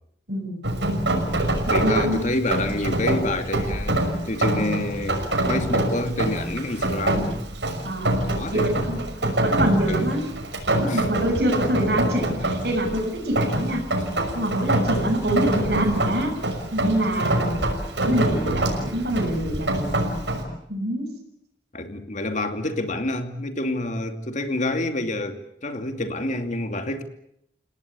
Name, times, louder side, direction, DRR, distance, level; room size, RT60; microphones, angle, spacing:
voice 1, 0.3-0.6 1.7-2.3 7.8-8.2 8.5-9.0 9.4-10.3 10.8-13.8 14.3-16.3 16.7-17.5 18.0-20.1 20.7-21.1, right 1 dB, 65° right, -1 dB, 7.4 m, -25 dB
Rain, 0.6-20.4, right 1 dB, 85° right, 6.1 m, -25 dB
voice 2, 1.7-5.2 5.5-7.4 8.3-8.9 9.9-10.1 10.9-11.1 21.7-27.0, left 1 dB, 45° left, 6 dB, 2.6 m, -28 dB
29.0 x 18.0 x 8.5 m, 0.75 s
head